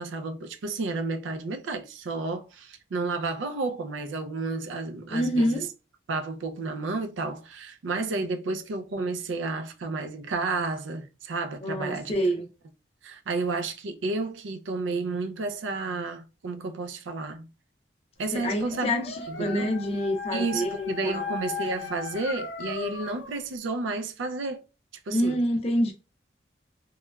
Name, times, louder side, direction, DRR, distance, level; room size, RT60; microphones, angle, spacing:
voice 1, 0.0-5.7 6.1-12.1 13.0-17.5 18.2-19.7 20.3-24.6 25.1-25.4, right 3 dB, 90° right, 0.4 m, -31 dB
voice 2, 5.1-5.7 11.6-12.5 18.3-21.2 25.1-25.9, equal, 35° left, 0.4 m, -27 dB
Dog, 18.4-23.4, left 5 dB, 80° left, 0.6 m, -37 dB
3.0 x 2.2 x 2.2 m
head